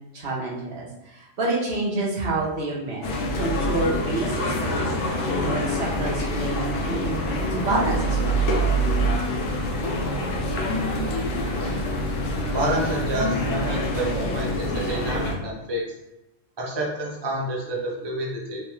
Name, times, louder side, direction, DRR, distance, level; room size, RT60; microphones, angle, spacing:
voice 1, 0.1-3.1 3.4-4.9 5.4-7.2 7.5-8.4, right 2 dB, 60° right, -4 dB, 0.9 m, -28 dB
sound 1, 3.0-15.4, equal, 80° left, 0.9 m, -25 dB
voice 2, 12.5-15.8 16.6-18.6, right 1 dB, 35° right, -3 dB, 0.4 m, -28 dB
3.1 x 2.2 x 3.0 m, 0.93 s
omnidirectional pair, 1.2 m